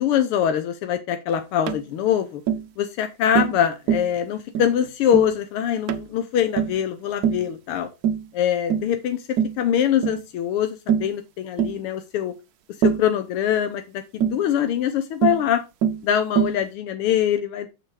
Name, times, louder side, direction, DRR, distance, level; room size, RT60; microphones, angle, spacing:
voice 1, 0.0-2.4 2.8-7.9 8.3-9.3 9.6-12.3 12.8-15.6 16.0-17.7, left 10 dB, 90° left, 8 dB, 1.8 m, -23 dB
Tap, 1.7-1.8 2.5-2.7 3.3-3.6 3.9-4.1 4.5-4.7 5.1-5.3 5.9-6.1 6.6-6.8 7.2-7.5 8.0-8.3 8.7-8.9 9.4-9.6 10.0-10.2 10.9-11.1 11.6-11.8 12.8-13.1 14.2-14.4 15.2-15.4 15.8-16.0 16.4-16.6, right 8 dB, 75° right, 0.9 m, -23 dB
6.5 x 6.4 x 4.8 m, 0.26 s
omnidirectional pair, 2.4 m